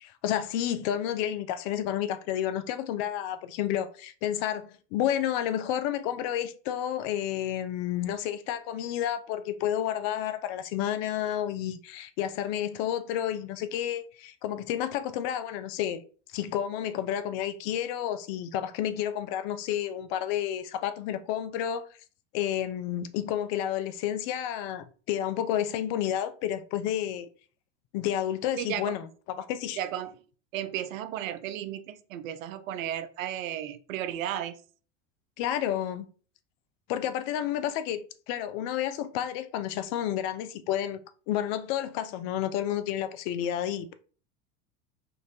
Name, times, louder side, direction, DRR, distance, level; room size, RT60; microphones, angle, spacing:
voice 1, 0.0-16.0 16.3-21.9 22.3-27.3 27.9-29.8 35.4-36.1 36.9-41.0 41.3-43.9, left 11 dB, 50° left, 0.5 m, -30 dB
voice 2, 28.6-28.9 29.8-30.1 30.5-34.6, right 11 dB, 75° right, 0.5 m, -34 dB
3.7 x 2.4 x 2.8 m
hypercardioid pair, 95°, 40 cm